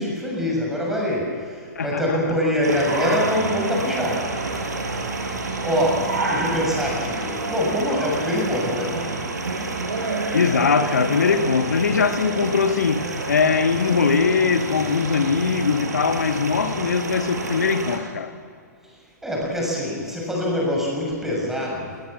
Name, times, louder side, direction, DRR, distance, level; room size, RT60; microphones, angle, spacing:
voice 1, 0.0-4.4 4.9-5.1 5.6-9.0 19.2-21.9, equal, 5° right, 6.9 m, -24 dB
voice 2, 1.7-2.4 10.3-18.3, left 5 dB, 70° left, 1.6 m, -21 dB
sound 1, 2.6-18.0, right 3 dB, 70° right, 4.7 m, -29 dB
21.0 x 20.5 x 7.4 m
figure-of-eight pair, 115°, 9 cm